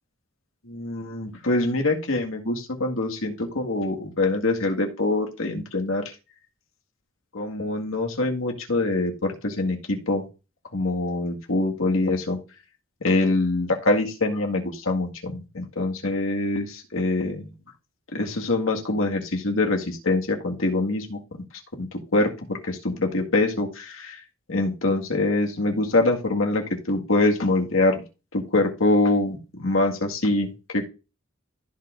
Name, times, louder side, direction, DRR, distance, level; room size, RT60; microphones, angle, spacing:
voice 1, 0.7-6.0 7.3-10.2 10.7-12.4 13.0-17.5 18.1-21.2 21.8-21.9 22.1-24.2 24.5-28.0 28.3-30.8, left 2 dB, 80° left, 2 dB, 1.9 m, -24 dB
15.0 x 5.1 x 2.6 m, 0.30 s
head